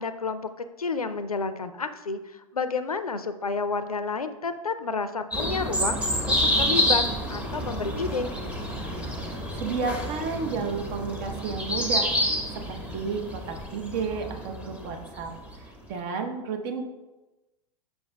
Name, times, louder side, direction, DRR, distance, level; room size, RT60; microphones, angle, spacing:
voice 1, 0.0-6.0 6.3-7.0 7.3-8.3, left 4 dB, 90° left, 11 dB, 0.4 m, -30 dB
sound 1, 5.3-15.5, equal, 5° right, 1.1 m, -28 dB
voice 2, 9.3-16.8, right 5 dB, 40° right, 5 dB, 0.9 m, -32 dB
7.8 x 5.5 x 2.2 m, 1.1 s
figure-of-eight pair, 95°, 18 cm